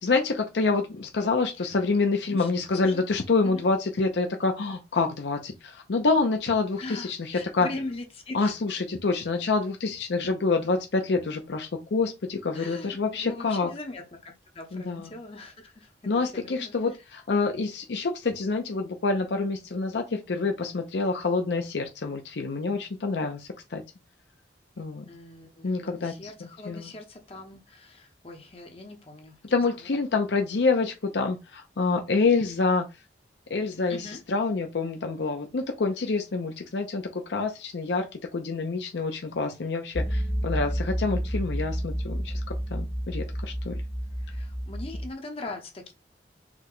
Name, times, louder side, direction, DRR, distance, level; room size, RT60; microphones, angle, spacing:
voice 1, 0.0-7.7 8.3-13.7 14.7-15.1 16.1-23.8 24.8-25.0 25.6-26.9 29.5-32.9 33.5-43.7, left 3 dB, 85° left, 0.6 m, -27 dB
voice 2, 1.9-2.5 2.8-3.0 3.4-3.6 6.8-8.5 12.5-16.7 25.1-29.4 29.8-30.0 33.9-34.2 44.2-45.9, left 2 dB, 35° left, 0.8 m, -41 dB
sound 1, 39.9-45.1, equal, 5° left, 0.4 m, -30 dB
4.6 x 2.2 x 3.8 m
head